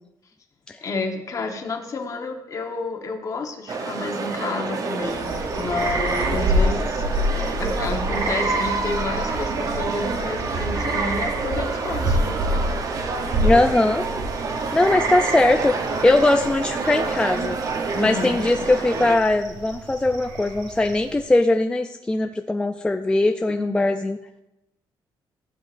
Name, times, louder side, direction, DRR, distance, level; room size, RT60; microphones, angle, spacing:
voice 1, 0.8-7.0 7.6-12.4 13.0-13.1 17.9-18.5 23.5-24.0, left 3 dB, 40° left, 4 dB, 1.1 m, -30 dB
sound 1, 3.7-19.2, right 4 dB, 45° right, 0.8 m, -28 dB
Southern Ontario Woodlands, 5.0-21.3, right 1 dB, 65° right, 1.7 m, -28 dB
sound 2, 6.0-10.6, left 5 dB, 60° left, 1.0 m, -43 dB
voice 2, 13.4-14.0 14.7-17.6 18.0-24.2, left 2 dB, 10° left, 5 dB, 0.3 m, -20 dB
15.5 x 8.3 x 2.5 m, 0.93 s
cardioid pair, 155°, 9 cm